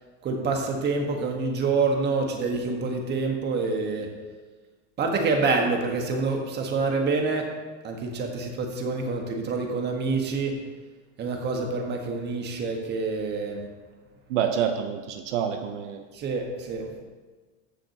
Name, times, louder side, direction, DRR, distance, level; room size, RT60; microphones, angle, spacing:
voice 1, 0.2-4.1 5.0-7.5 7.8-10.5 11.2-13.6 16.1-16.9, right 4 dB, 30° right, 2 dB, 1.5 m, -27 dB
voice 2, 14.3-16.0, right 8 dB, 80° right, 6 dB, 0.9 m, -27 dB
15.0 x 6.2 x 2.9 m, 1.4 s
supercardioid pair, 135°, 35 cm